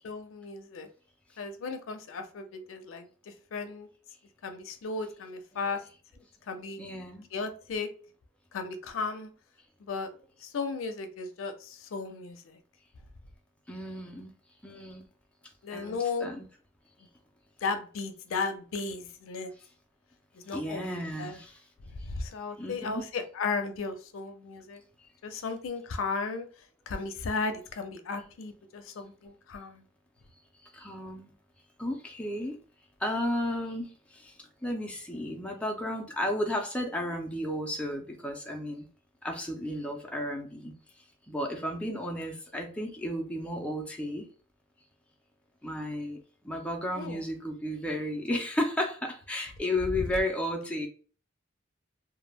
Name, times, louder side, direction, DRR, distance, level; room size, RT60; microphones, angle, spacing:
voice 1, 0.0-0.9 1.4-3.9 4.4-5.8 6.5-6.8 7.3-7.9 8.5-9.3 9.8-10.1 10.4-12.6 15.6-16.3 17.6-19.5 20.4-21.4 22.0-24.8 25.2-26.5 26.9-29.8 47.0-47.2 50.0-50.1, left 4 dB, 90° left, 7 dB, 0.4 m, -35 dB
voice 2, 6.8-7.3 13.7-14.3 14.6-15.0 15.7-16.5 20.5-21.6 22.6-23.0 30.7-31.3 31.8-32.6 33.0-34.3 34.6-38.9 39.2-40.7 41.3-44.3 45.6-46.2 46.4-50.9, left 1 dB, 5° left, 1 dB, 0.4 m, -33 dB
2.2 x 2.0 x 3.2 m, 0.40 s
head